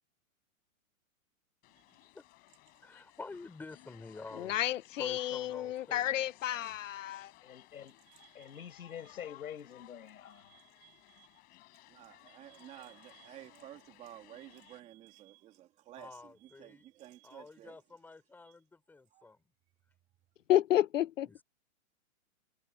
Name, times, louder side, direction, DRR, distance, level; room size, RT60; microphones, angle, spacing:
sound 1, 1.6-14.8, left 21 dB, 20° left, 4.4 m, -60 dB
voice 1, 1.7-2.1 8.1-8.7 10.3-11.4 11.9-17.8 18.4-18.6 19.1-19.3, right 13 dB, 15° right, 3.1 m, -54 dB
voice 2, 2.8-4.6 5.0-6.2 16.0-16.8 17.2-19.4 21.3-21.4, left 3 dB, 5° left, 5.3 m, -49 dB
voice 3, 4.4-7.3 20.5-21.3, left 12 dB, 65° left, 0.9 m, -31 dB
voice 4, 6.5-6.8 7.4-8.0 8.3-10.5, left 9 dB, 85° left, 6.1 m, -47 dB
hypercardioid pair, 170°, 42 cm